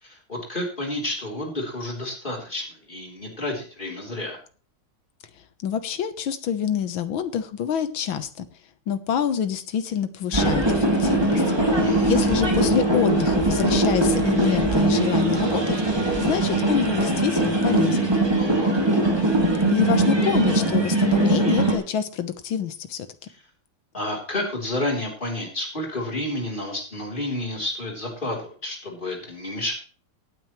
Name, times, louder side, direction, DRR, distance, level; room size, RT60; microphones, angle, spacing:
voice 1, 0.0-4.4 11.8-12.3 18.4-18.7 23.3-23.4 23.9-29.7, left 1 dB, 25° left, 0 dB, 3.6 m, -30 dB
voice 2, 5.6-8.5 8.9-11.4 12.0-18.1 19.7-23.1, left 8 dB, 75° left, 11 dB, 1.9 m, -26 dB
sound 1, 10.3-21.8, right 2 dB, 10° right, 2.2 m, -21 dB
18.0 x 9.2 x 3.1 m, 0.39 s
omnidirectional pair, 2.2 m